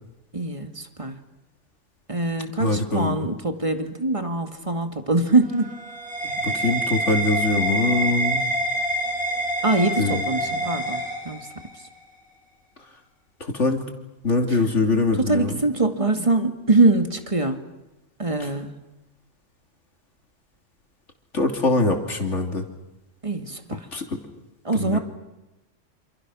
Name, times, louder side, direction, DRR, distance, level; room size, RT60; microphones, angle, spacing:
voice 1, 0.3-1.2 2.1-5.7 9.6-11.5 14.5-14.6 15.3-17.6 18.2-18.7 23.2-23.9 24.6-25.0, right 2 dB, 25° right, 6 dB, 2.2 m, -23 dB
voice 2, 2.6-3.3 6.4-8.5 10.0-10.7 13.4-13.8 14.2-15.6 21.3-22.6 23.9-24.2 24.7-25.0, left 3 dB, 65° left, 3 dB, 3.4 m, -23 dB
sound 1, 5.3-11.8, right 1 dB, 5° right, 7.7 m, -26 dB
28.0 x 28.0 x 6.3 m, 1.0 s
omnidirectional pair, 1.3 m